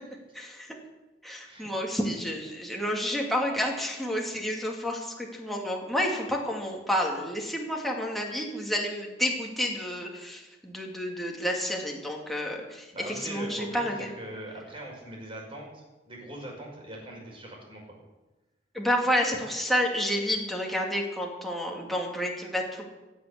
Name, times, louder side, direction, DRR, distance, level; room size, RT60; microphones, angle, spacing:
voice 1, 0.3-0.8 1.2-14.1 18.7-22.8, equal, ahead, -1 dB, 2.5 m, -30 dB
voice 2, 12.9-17.8, right 1 dB, 30° right, -1 dB, 5.5 m, -41 dB
17.0 x 7.8 x 8.4 m, 1.1 s
head